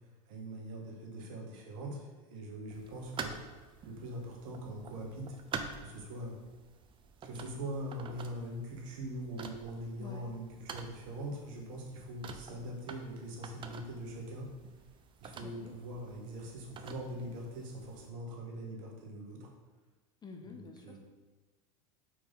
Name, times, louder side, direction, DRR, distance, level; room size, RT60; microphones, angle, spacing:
voice 1, 0.3-3.3 3.8-5.4 5.8-6.4 7.2-14.5 15.2-19.5 20.5-21.0, right 1 dB, 65° right, 0 dB, 1.5 m, -42 dB
sound 1, 2.7-18.1, right 5 dB, 25° right, 0.6 m, -48 dB
voice 2, 15.2-15.7 20.2-21.0, left 4 dB, 25° left, 4 dB, 0.7 m, -49 dB
5.0 x 4.7 x 4.0 m, 1.3 s
hypercardioid pair, 95°, 18 cm